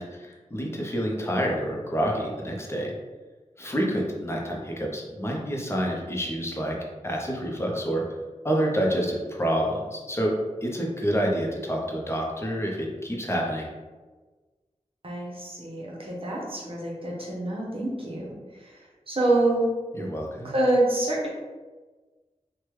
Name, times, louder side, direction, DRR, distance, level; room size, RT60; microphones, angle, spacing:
voice 1, 0.0-2.9 3.6-6.8 7.0-8.0 8.4-10.3 10.6-13.7 19.9-20.5, equal, 20° left, -1 dB, 0.6 m, -28 dB
voice 2, 15.0-18.8 19.1-19.7 20.4-21.3, right 2 dB, 50° right, -3 dB, 0.8 m, -26 dB
3.3 x 2.2 x 3.0 m, 1.3 s
wide cardioid pair, 75°, 12 cm